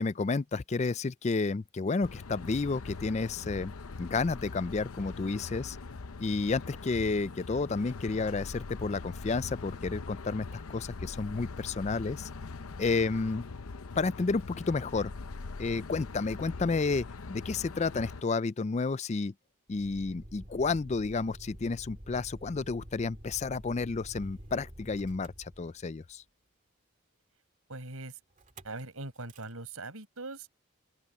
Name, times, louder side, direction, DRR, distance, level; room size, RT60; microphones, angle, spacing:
voice 1, 0.0-3.7 4.0-5.8 6.2-12.3 12.8-13.4 14.0-15.1 15.6-19.3 19.7-26.2, left 4 dB, 30° left, 0.4 m, -31 dB
sound 1, 2.0-18.2, left 3 dB, 90° left, 0.7 m, -42 dB
Motor vehicle (road), 19.7-26.1 28.4-28.8 29.1-29.5, right 1 dB, 35° right, 2.3 m, -48 dB
voice 2, 27.7-28.2 28.6-30.5, right 2 dB, 90° right, 5.6 m, -41 dB
open air
head